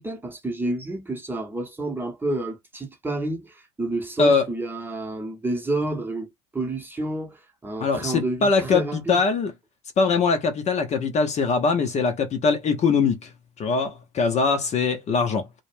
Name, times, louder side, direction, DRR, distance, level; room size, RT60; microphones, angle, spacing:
voice 1, 0.0-9.2, right 2 dB, 10° right, 0.9 m, -29 dB
voice 2, 7.8-9.5 10.0-13.3 13.6-15.5, left 4 dB, 35° left, 0.7 m, -22 dB
2.3 x 2.1 x 3.3 m
hypercardioid pair, 75°, 21 cm